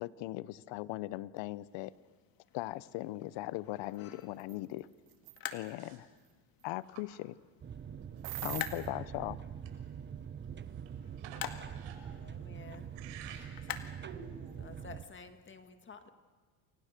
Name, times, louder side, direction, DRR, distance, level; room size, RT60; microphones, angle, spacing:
voice 1, 0.0-1.9 2.5-4.9 5.5-6.1 6.6-7.3 8.4-9.4, left 17 dB, 65° left, 19 dB, 0.9 m, -39 dB
sound 1, 1.5-14.7, left 9 dB, 45° left, 2.0 m, -49 dB
sound 2, 4.4-4.6 5.1-5.4 8.2-8.9, right 16 dB, 50° right, 1.0 m, -41 dB
sound 3, 7.6-15.0, right 8 dB, 25° right, 1.0 m, -44 dB
voice 2, 8.1-8.4 10.4-12.5 12.9-13.7 14.0-14.6, right 7 dB, 75° right, 4 dB, 6.4 m, -52 dB
voice 3, 12.3-12.9 14.6-16.1, left 4 dB, 25° left, 8 dB, 2.0 m, -51 dB
29.5 x 23.5 x 6.7 m, 1.4 s
supercardioid pair, 115°, 47 cm